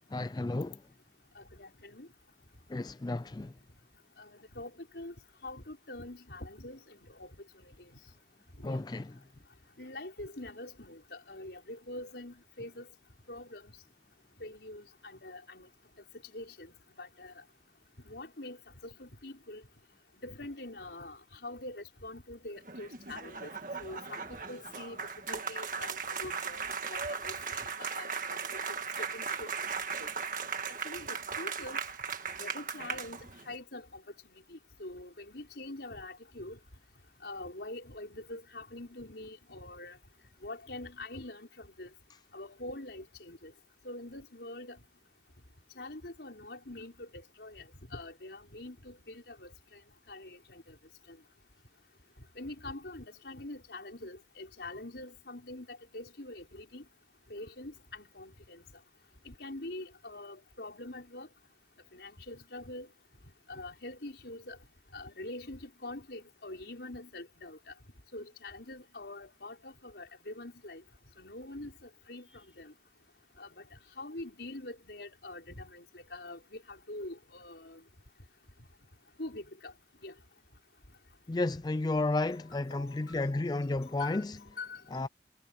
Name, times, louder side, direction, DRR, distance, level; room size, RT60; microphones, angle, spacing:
voice 1, 0.1-0.8 2.7-3.5 8.6-9.1 81.3-84.4 84.9-85.1, left 2 dB, 25° left, 0.4 m, -32 dB
voice 2, 1.3-2.1 4.2-5.1 5.4-7.9 8.6-8.8 9.8-12.9 13.3-13.7 14.4-15.7 16.3-16.7 17.0-17.4 18.0-19.6 20.2-23.5 23.8-25.0 25.3-28.6 29.0-29.5 30.0-30.1 30.7-31.8 32.4-34.0 34.3-36.6 37.2-40.0 40.4-41.9 42.3-43.5 43.8-44.8 45.8-49.8 50.1-50.7 51.1-51.2 52.4-56.8 57.3-58.6 59.2-61.3 61.9-62.9 63.5-64.6 64.9-67.7 68.1-70.8 71.2-72.7 73.4-77.8 79.2-79.7 80.0-80.1 82.4-83.4 83.9-84.8, left 2 dB, 75° left, 4.6 m, -45 dB
sound 1, 22.6-33.6, right 5 dB, 50° right, 1.8 m, -37 dB
head